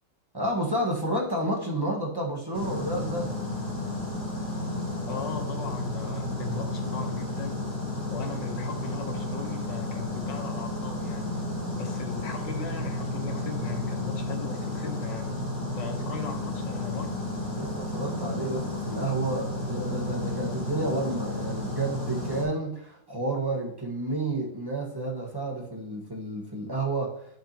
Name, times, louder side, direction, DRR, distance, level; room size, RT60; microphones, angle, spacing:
voice 1, 0.3-3.3 17.6-27.3, right 2 dB, 15° right, -2 dB, 1.2 m, -30 dB
sound 1, 2.5-22.4, left 1 dB, 40° left, 3.0 m, -32 dB
voice 2, 5.1-7.6 8.1-11.3 11.7-15.4 15.7-17.3, left 6 dB, 65° left, 3 dB, 1.7 m, -38 dB
11.0 x 5.9 x 2.9 m, 0.70 s
omnidirectional pair, 2.2 m